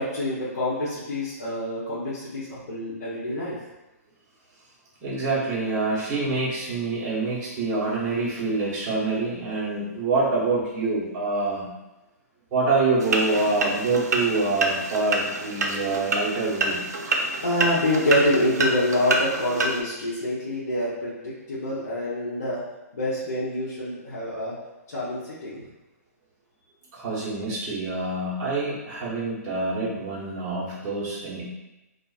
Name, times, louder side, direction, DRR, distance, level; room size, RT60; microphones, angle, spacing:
voice 1, 0.0-3.6 17.4-22.6 22.9-24.5 24.9-25.7, left 1 dB, 85° left, -10 dB, 0.7 m, -26 dB
voice 2, 5.0-11.7 12.5-16.8 26.9-31.4, right 3 dB, 30° right, -7 dB, 1.0 m, -26 dB
sound 1, 13.0-19.8, right 2 dB, 85° right, 0.4 m, -27 dB
2.4 x 2.3 x 2.3 m, 1.0 s
hypercardioid pair, 135°, 9 cm